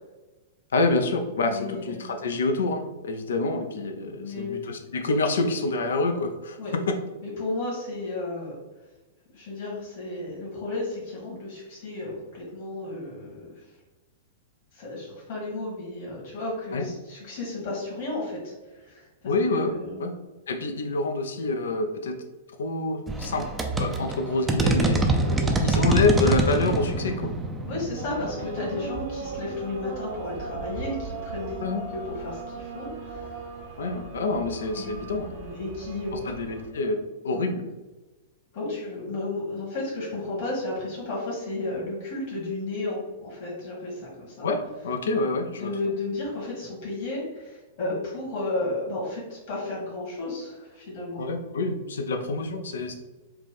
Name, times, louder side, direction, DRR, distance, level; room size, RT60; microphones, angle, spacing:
voice 1, 0.7-6.6 16.7-16.8 19.3-20.1 20.5-22.2 22.6-25.0 25.6-27.3 31.6-31.8 33.8-35.3 36.3-37.6 44.4-45.7 51.2-52.9, left 3 dB, 65° left, 6 dB, 0.5 m, -27 dB
voice 2, 1.5-2.1 4.0-4.6 6.6-6.7 7.2-8.5 9.3-13.7 14.7-20.0 25.2-25.4 27.7-31.6 31.9-33.3 34.8-36.3 37.3-37.5 38.5-44.5 45.6-51.2, left 2 dB, 50° left, -4 dB, 1.4 m, -33 dB
sound 1, 23.1-29.5, right 2 dB, 15° right, 0.5 m, -26 dB
sound 2, 28.0-36.7, right 3 dB, 50° right, 1.0 m, -38 dB
4.4 x 2.4 x 3.5 m, 1.2 s
figure-of-eight pair, 100°, 0 cm